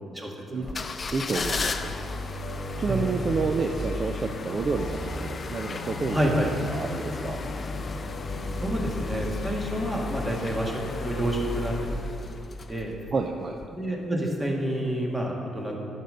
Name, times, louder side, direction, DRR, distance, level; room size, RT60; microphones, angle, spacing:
voice 1, 0.1-0.6 2.9-3.0 6.1-6.5 8.6-11.7 12.7-12.9 13.7-15.8, right 1 dB, 15° right, -1 dB, 1.7 m, -28 dB
sound 1, 0.6-13.1 13.6-13.7, left 3 dB, 35° left, 0.5 m, -34 dB
sound 2, 0.9-11.9, left 1 dB, 70° left, 0.7 m, -39 dB
voice 2, 1.1-1.9 2.8-7.4 13.1-13.6, right 4 dB, 45° right, 4 dB, 0.5 m, -29 dB
10.5 x 5.3 x 6.5 m, 2.6 s
cardioid pair, 90°, 0 cm